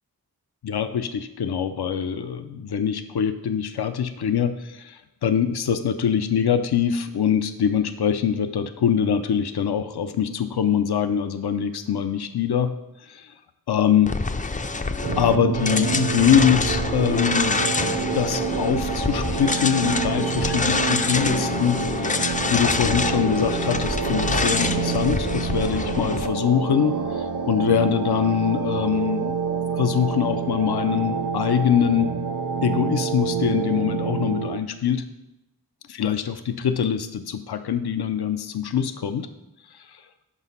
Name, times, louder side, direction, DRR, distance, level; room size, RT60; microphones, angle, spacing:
voice 1, 0.6-12.7 13.0-13.3 13.7-14.1 15.2-17.6 18.1-29.3 29.7-32.1 32.6-35.0 35.9-39.3 39.7-40.0, left 8 dB, 80° left, 10 dB, 0.5 m, -23 dB
sound 1, 14.0-26.3, left 3 dB, 20° left, 0.3 m, -26 dB
sound 2, 15.0-34.6, right 6 dB, 55° right, 0.6 m, -27 dB
6.1 x 4.9 x 5.4 m, 0.95 s
wide cardioid pair, 60°, 38 cm